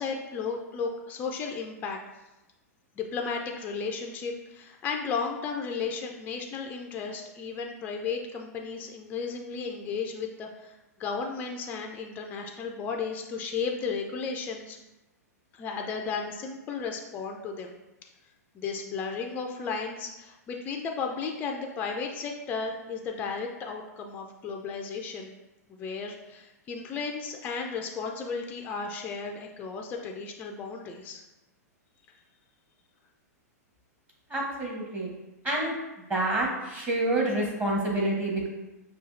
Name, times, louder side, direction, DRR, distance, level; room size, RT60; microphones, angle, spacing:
voice 1, 0.0-2.0 3.0-14.8 15.5-17.8 18.5-25.3 25.7-31.2, left 5 dB, 20° left, 2 dB, 0.3 m, -34 dB
voice 2, 34.3-35.1 35.4-35.7 36.1-38.5, right 1 dB, 20° right, -3 dB, 0.9 m, -28 dB
5.4 x 2.4 x 2.5 m, 1.0 s
figure-of-eight pair, 100°, 9 cm